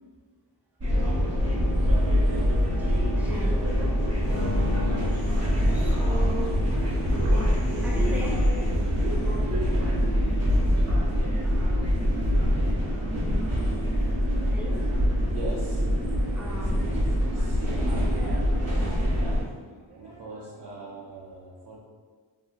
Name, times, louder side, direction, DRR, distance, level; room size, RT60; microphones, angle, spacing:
sound 1, 0.8-19.4, equal, 35° right, 0.8 m, -24 dB
sound 2, 0.9-20.4, left 1 dB, 70° left, 0.7 m, -42 dB
voice 1, 3.2-3.6 5.7-7.3 7.8-8.4 14.4-14.8 16.3-16.8, right 1 dB, 5° right, -3 dB, 0.5 m, -37 dB
sound 3, 4.2-6.2 7.2-8.7, left 4 dB, 30° left, 0.8 m, -37 dB
voice 2, 15.3-15.9 16.6-16.7 17.0-19.6 19.9-21.8, right 2 dB, 65° right, -5 dB, 0.6 m, -40 dB
2.7 x 2.6 x 2.4 m, 1.5 s
cardioid pair, 50°, 44 cm